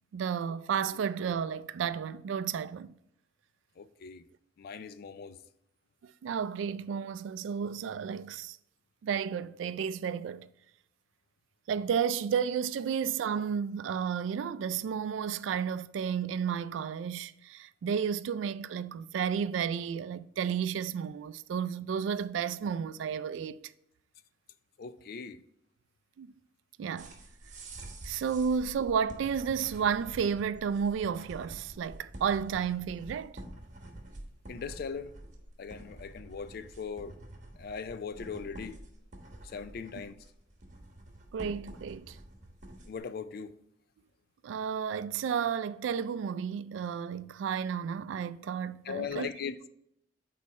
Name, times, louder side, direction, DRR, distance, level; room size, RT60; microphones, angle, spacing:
voice 1, 0.1-2.9 6.2-8.6 9.0-10.5 11.7-23.6 26.2-26.3 26.8-27.1 28.0-33.4 41.3-42.2 44.4-49.3, right 7 dB, 85° right, 0.3 m, -32 dB
voice 2, 3.8-4.2 4.6-5.4 24.8-25.4 34.5-35.1 35.6-37.1 37.6-38.8 39.4-40.2 42.9-43.6 48.8-49.7, left 6 dB, 55° left, 0.4 m, -39 dB
sound 1, 27.0-43.0, right 1 dB, 45° right, 1.2 m, -48 dB
6.4 x 4.2 x 4.1 m
head